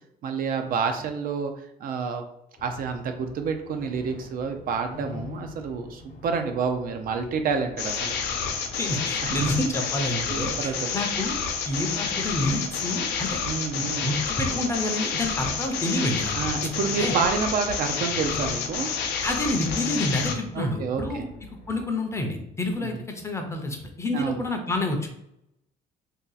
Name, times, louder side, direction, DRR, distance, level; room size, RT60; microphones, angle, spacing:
voice 1, 0.2-2.2 2.6-8.2 9.2-9.5 10.3-11.0 13.5-14.1 16.3-18.9 20.5-21.3 24.1-24.4, right 5 dB, 55° right, 6 dB, 0.5 m, -29 dB
sound 1, 2.6-21.8, left 3 dB, 55° left, 0.8 m, -43 dB
sound 2, 7.8-20.4, left 6 dB, 85° left, 0.5 m, -29 dB
voice 2, 8.8-11.4 11.7-13.4 13.7-16.5 17.0-17.1 19.2-21.2 21.7-25.1, left 1 dB, 15° left, 3 dB, 0.6 m, -28 dB
2.7 x 2.3 x 3.9 m, 0.79 s
cardioid pair, 110°, 17 cm